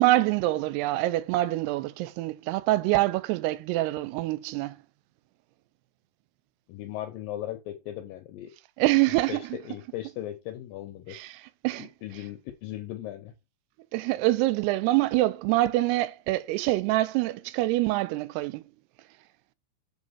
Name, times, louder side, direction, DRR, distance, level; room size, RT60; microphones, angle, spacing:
voice 1, 0.0-4.8 8.8-9.4 11.1-11.9 13.9-18.6, right 17 dB, 85° right, 2.6 m, -25 dB
voice 2, 6.7-8.5 9.3-11.2 11.8-13.3, left 13 dB, 80° left, 2.0 m, -37 dB
7.9 x 3.6 x 5.6 m
omnidirectional pair, 4.8 m